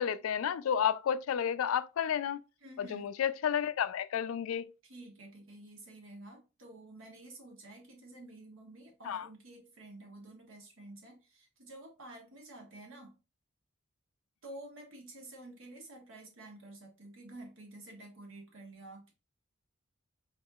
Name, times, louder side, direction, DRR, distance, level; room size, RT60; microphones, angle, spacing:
voice 1, 0.0-2.4 2.8-4.7 9.0-9.3, left 8 dB, 80° left, 0.3 m, -31 dB
voice 2, 2.6-3.1 4.8-13.1 14.4-19.1, right 2 dB, 70° right, 1.4 m, -50 dB
4.3 x 3.6 x 2.3 m
head